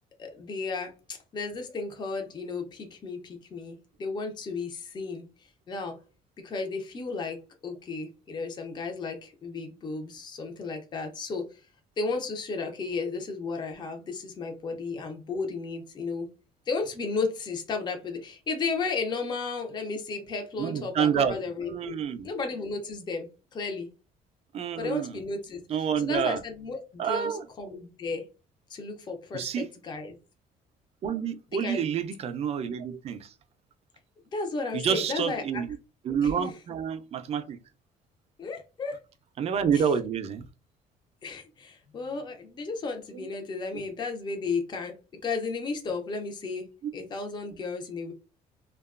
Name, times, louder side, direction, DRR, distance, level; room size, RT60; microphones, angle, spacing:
voice 1, 0.2-6.0 6.4-11.6 12.0-16.3 16.7-22.0 22.2-23.9 24.8-25.6 26.0-28.3 28.7-30.1 31.6-31.8 34.3-35.6 36.2-36.5 38.4-39.0 39.7-39.9 41.2-44.9 45.2-46.7 46.9-48.1, left 4 dB, 30° left, 0.5 m, -34 dB
voice 2, 20.6-21.4 21.7-22.3 24.5-25.2 25.7-26.4 27.0-27.4 29.3-29.7 31.0-33.3 34.7-35.8 36.0-37.6 39.4-40.4 43.1-43.3, right 7 dB, 45° right, 0.4 m, -28 dB
2.8 x 2.2 x 2.3 m
cardioid pair, 120°, 14 cm